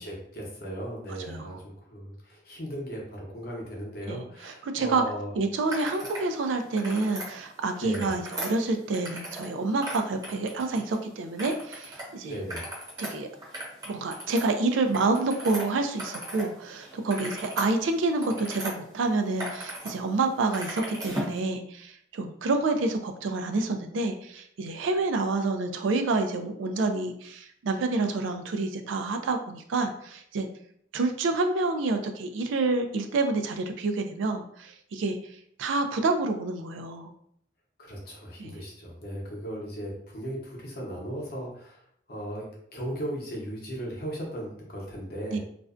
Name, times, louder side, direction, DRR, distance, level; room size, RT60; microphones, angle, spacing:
voice 1, 0.0-5.3 7.8-8.1 12.2-12.6 37.8-41.8 42.1-42.5 42.7-45.4, right 1 dB, 55° left, -2 dB, 0.7 m, -37 dB
voice 2, 1.2-1.6 4.1-5.0 5.4-12.4 13.0-13.3 13.9-30.5 30.9-35.2 35.6-37.1 38.4-38.6 45.3-45.4, right 3 dB, 85° right, 6 dB, 0.4 m, -28 dB
sound 1, 5.7-6.3 6.6-7.3 7.8-9.5 9.8-11.0 11.4-12.0 12.4-16.5 16.8-18.7 19.2-19.9 20.2-21.4, right 1 dB, 20° right, 0.7 m, -37 dB
2.4 x 2.1 x 2.4 m, 0.67 s
head